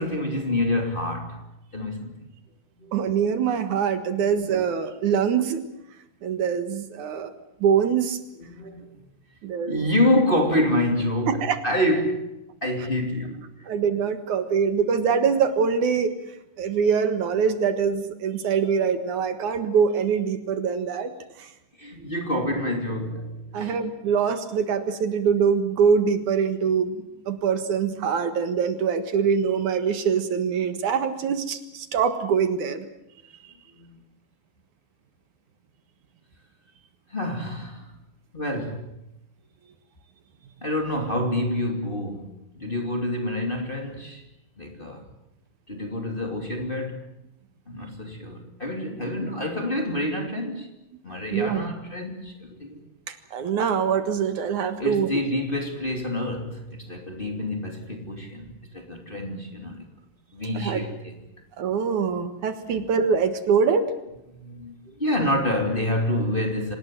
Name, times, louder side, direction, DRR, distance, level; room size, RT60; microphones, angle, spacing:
voice 1, 0.0-1.4 1.7-2.2 2.8-2.9 4.1-4.3 8.5-8.9 9.7-13.7 21.8-23.8 33.8-34.0 37.1-37.9 38.3-38.9 40.6-44.2 44.6-45.0 45.7-47.0 47.7-50.7 51.0-52.8 54.8-59.9 60.3-61.1 62.7-62.8 64.3-66.8, left 1 dB, 15° left, 2.6 m, -27 dB
voice 2, 2.9-5.6 6.2-7.3 7.6-8.2 9.4-9.9 11.3-11.6 13.7-16.1 16.6-21.1 21.4-21.5 23.5-32.9 51.3-51.6 53.1-55.1 60.6-60.8 61.6-63.9, right 6 dB, 70° right, 3.0 m, -24 dB
26.5 x 19.5 x 7.6 m
omnidirectional pair, 3.7 m